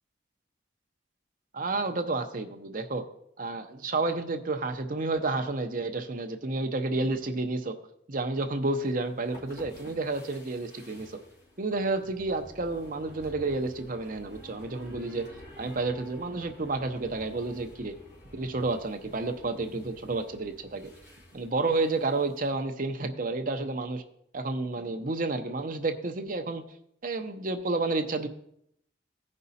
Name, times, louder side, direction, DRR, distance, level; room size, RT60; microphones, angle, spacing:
voice 1, 1.5-3.1 3.4-7.7 8.1-11.2 11.6-15.3 15.6-17.9 18.3-20.9 21.3-24.0 24.3-26.6 27.0-28.3, right 3 dB, 45° right, 6 dB, 0.8 m, -30 dB
sound 1, 8.6-22.5, left 1 dB, 60° left, 3.1 m, -51 dB
15.5 x 5.4 x 4.1 m, 0.73 s
head